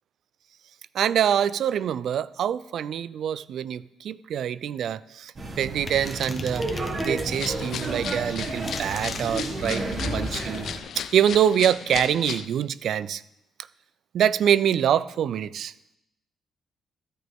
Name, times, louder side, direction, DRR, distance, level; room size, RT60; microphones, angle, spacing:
voice 1, 0.9-6.7 7.0-10.6 11.0-13.2 14.1-15.7, right 9 dB, 70° right, 17 dB, 0.4 m, -25 dB
sound 1, 5.4-10.8, right 2 dB, 40° right, 1.7 m, -31 dB
sound 2, 5.9-7.6 8.3-9.3, left 4 dB, 35° left, 1.2 m, -39 dB
sound 3, 7.3-12.5, left 8 dB, 70° left, 0.6 m, -36 dB
13.5 x 9.3 x 3.6 m, 0.84 s
cardioid pair, 90°, 0 cm